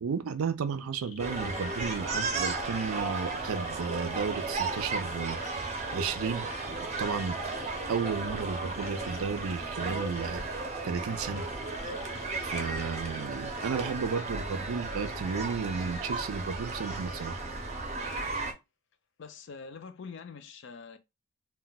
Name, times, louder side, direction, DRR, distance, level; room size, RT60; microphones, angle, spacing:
voice 1, 0.0-5.4 5.9-7.4 7.9-10.4 10.8-11.4 12.4-17.4, right 5 dB, 85° right, 0.4 m, -33 dB
sound 1, 1.0-10.3 11.3-13.3, left 5 dB, 85° left, 0.9 m, -51 dB
sound 2, 1.2-18.5, right 3 dB, 30° right, 0.5 m, -35 dB
voice 2, 18.3-18.6 19.2-21.0, left 5 dB, 60° left, 0.4 m, -45 dB
2.2 x 2.2 x 3.9 m
head